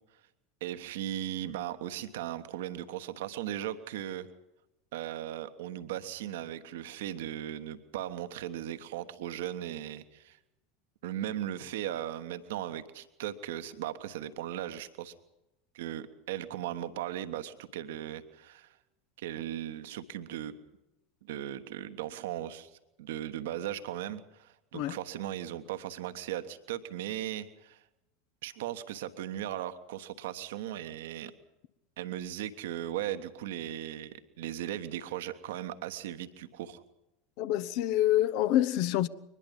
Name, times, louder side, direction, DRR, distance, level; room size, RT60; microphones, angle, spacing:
voice 1, 0.6-4.3 4.9-10.4 11.0-15.1 15.7-18.7 19.2-20.5 21.2-22.7 23.0-27.8 28.4-31.3 32.0-36.8, right 12 dB, 60° right, 1.2 m, -37 dB
voice 2, 37.4-39.1, left 13 dB, 50° left, 0.9 m, -27 dB
23.0 x 20.5 x 5.5 m
figure-of-eight pair, 80°, 0 cm